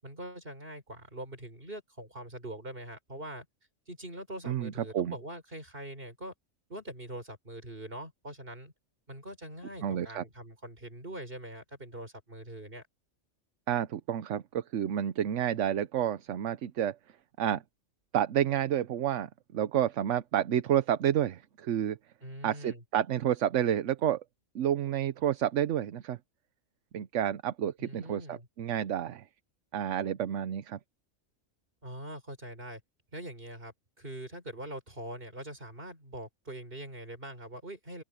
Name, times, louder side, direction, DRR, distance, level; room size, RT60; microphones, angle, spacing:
voice 1, 0.0-3.5 3.9-6.3 6.7-8.7 9.1-12.8 22.2-22.8 27.8-28.5 31.8-32.8 33.1-38.0, right 1 dB, 45° right, 5.7 m, -43 dB
voice 2, 4.4-5.1 9.8-10.2 13.7-17.0 17.4-17.6 18.1-22.0 22.4-24.2 24.5-26.2 26.9-29.2 29.7-30.8, right 10 dB, 70° right, 1.1 m, -30 dB
omnidirectional pair, 1.3 m